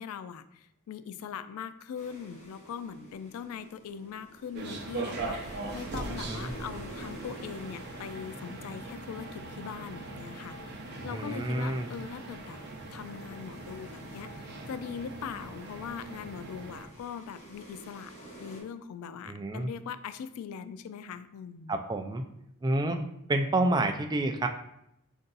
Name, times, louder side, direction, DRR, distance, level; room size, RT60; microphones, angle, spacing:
voice 1, 0.0-10.6 11.0-12.6 12.9-18.1 18.4-21.8, left 7 dB, 80° left, 13 dB, 0.3 m, -41 dB
sound 1, 1.9-18.6, right 1 dB, 30° left, 1.2 m, -50 dB
sound 2, 4.5-16.8, right 2 dB, 50° right, 0.6 m, -41 dB
voice 2, 11.1-11.9 19.3-19.7 21.7-22.2 22.6-23.0 23.3-24.5, right 2 dB, 20° right, 5 dB, 0.3 m, -29 dB
4.4 x 2.7 x 3.9 m, 0.78 s
head